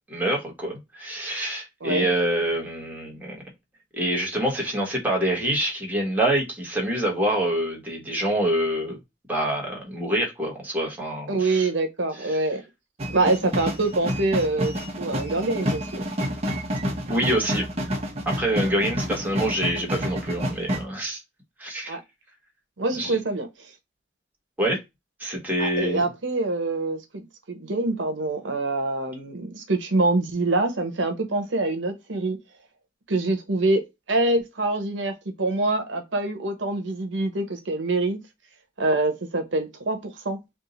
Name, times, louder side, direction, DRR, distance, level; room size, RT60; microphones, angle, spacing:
voice 1, 0.1-3.4 3.9-9.0 9.3-11.7 12.3-12.4 17.1-17.7 18.2-21.2 21.6-22.0 22.9-23.1 24.6-24.8 25.2-26.0, right 1 dB, 10° right, 1.5 m, -26 dB
voice 2, 11.3-12.6 13.1-16.0 21.9-22.0 22.8-23.7 25.6-32.4 33.1-38.2 38.8-40.4, right 2 dB, 85° right, 1.0 m, -25 dB
sound 1, 13.0-20.8, equal, 35° right, 1.2 m, -29 dB
3.6 x 2.5 x 4.0 m
head